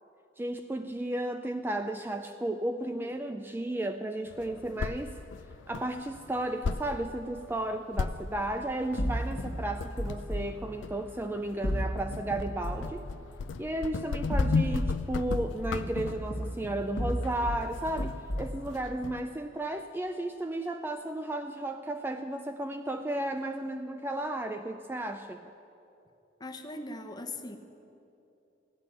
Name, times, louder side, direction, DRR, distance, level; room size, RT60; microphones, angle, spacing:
voice 1, 0.4-5.2 5.7-13.1 13.6-25.5, right 1 dB, 10° right, 7 dB, 0.3 m, -34 dB
sound 1, 4.3-19.2, left 4 dB, 85° left, 0.4 m, -37 dB
sound 2, 9.0-10.5 11.6-13.0 14.1-15.0 15.3-17.6 18.0-18.6, equal, 60° left, 1.3 m, -33 dB
voice 2, 26.4-27.6, left 2 dB, 20° left, 6 dB, 0.8 m, -40 dB
15.5 x 5.7 x 9.8 m, 2.8 s
head